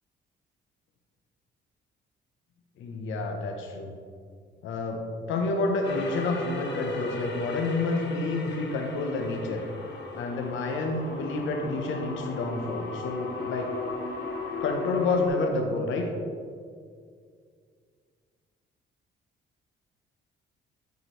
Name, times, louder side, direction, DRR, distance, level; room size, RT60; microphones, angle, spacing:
voice 1, 2.8-3.9 4.6-5.0 5.3-9.7 10.1-13.7 14.6-16.1, left 3 dB, 80° left, 3 dB, 0.8 m, -29 dB
sound 1, 5.8-15.3, left 2 dB, 60° left, 1.2 m, -36 dB
9.3 x 4.9 x 3.1 m, 2.1 s
cardioid pair, 90°, 20 cm